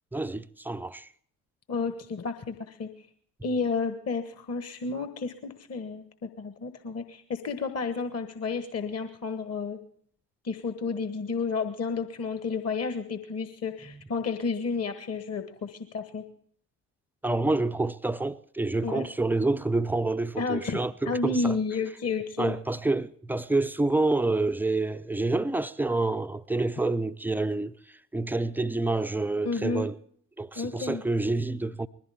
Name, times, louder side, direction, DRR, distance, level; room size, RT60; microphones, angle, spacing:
voice 1, 0.1-1.1 13.9-14.0 17.2-21.6 22.4-30.0 30.4-31.9, right 2 dB, 5° right, 0.5 m, -28 dB
voice 2, 1.7-2.9 3.4-9.8 10.4-16.2 18.8-19.1 20.4-20.8 21.1-22.6 29.4-29.9 30.6-31.0, left 4 dB, 35° left, 1.3 m, -31 dB
21.0 x 15.0 x 3.5 m
figure-of-eight pair, 50°, 43 cm